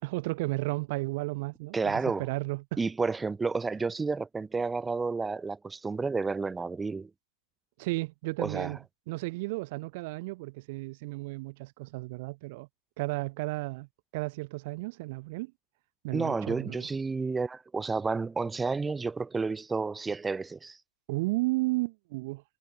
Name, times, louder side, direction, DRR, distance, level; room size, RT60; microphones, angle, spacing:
voice 1, 0.0-2.8 7.8-8.8 9.1-12.7 13.0-13.9 14.1-15.5 16.0-16.9 21.1-22.4, right 23 dB, 35° right, 3.2 m, -33 dB
voice 2, 1.7-2.3 2.8-7.1 8.4-8.8 16.1-20.8, right 4 dB, 5° right, 2.2 m, -31 dB
hypercardioid pair, 160°, 0 cm